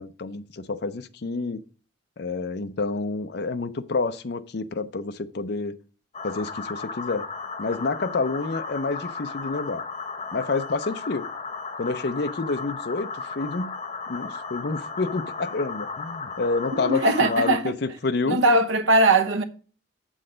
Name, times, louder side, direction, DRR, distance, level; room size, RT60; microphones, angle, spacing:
voice 1, 0.0-1.6 2.2-5.7 6.2-7.2 7.6-9.8 10.3-11.3 11.8-13.1 13.3-13.7 14.1-18.4, left 3 dB, 55° left, 0.5 m, -28 dB
sound 1, 6.1-17.6, left 4 dB, 30° left, 0.8 m, -35 dB
voice 2, 16.8-17.7 18.3-19.4, right 2 dB, 85° right, 0.9 m, -20 dB
7.6 x 6.3 x 5.0 m
head